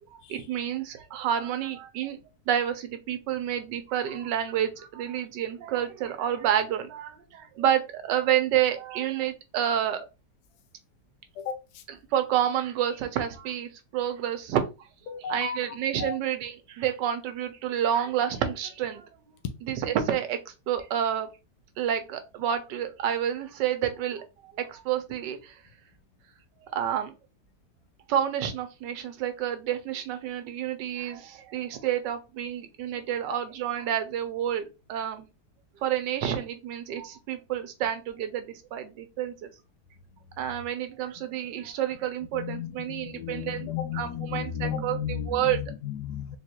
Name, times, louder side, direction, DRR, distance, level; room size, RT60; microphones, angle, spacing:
voice 1, 0.3-2.2 2.5-10.0 12.1-14.6 15.3-19.1 19.7-21.3 21.8-25.5 26.6-27.1 28.1-35.3 35.8-39.5 40.4-43.7 43.9-45.0 45.3-45.6, right 10 dB, 85° right, 9 dB, 1.3 m, -29 dB
voice 2, 11.3-11.8 15.1-16.2 33.3-33.4 41.2-41.3 42.3-46.4, left 8 dB, 70° left, 5 dB, 1.0 m, -34 dB
3.7 x 3.1 x 2.9 m, 0.28 s
omnidirectional pair, 1.9 m